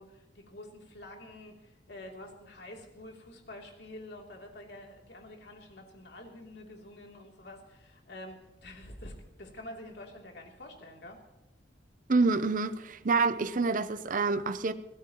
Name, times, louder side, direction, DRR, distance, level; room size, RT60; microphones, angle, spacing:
voice 1, 0.0-11.2, left 1 dB, 65° left, 3.0 m, -47 dB
voice 2, 12.1-14.7, right 4 dB, 45° right, 0.6 m, -27 dB
24.0 x 16.5 x 3.0 m
head